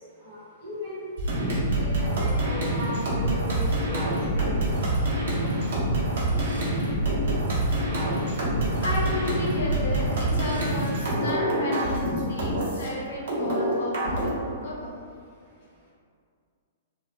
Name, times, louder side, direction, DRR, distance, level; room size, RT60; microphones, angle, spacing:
voice 1, 0.2-1.0 1.8-4.7, left 1 dB, 45° right, -7 dB, 1.0 m, -37 dB
sound 1, 1.2-12.9 13.3-14.3, right 1 dB, 60° right, 0.7 m, -26 dB
voice 2, 8.8-14.9, left 1 dB, 60° left, -3 dB, 0.6 m, -33 dB
2.1 x 2.0 x 3.6 m, 2.2 s
figure-of-eight pair, 110°, 0 cm